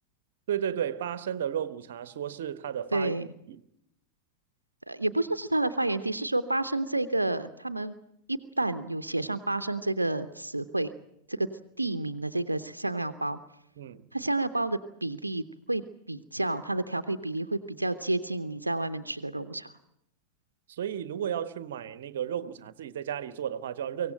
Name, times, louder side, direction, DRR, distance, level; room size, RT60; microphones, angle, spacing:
voice 1, 0.5-3.1 3.5-3.6 13.8-14.1 20.7-24.1, right 9 dB, 60° right, 1.1 m, -33 dB
voice 2, 2.9-3.3 4.9-7.9 8.3-10.9 11.3-11.5 11.8-13.4 14.1-15.8 16.1-19.7, right 2 dB, 85° right, 0.8 m, -30 dB
24.0 x 17.0 x 9.0 m
figure-of-eight pair, 90°, 0 cm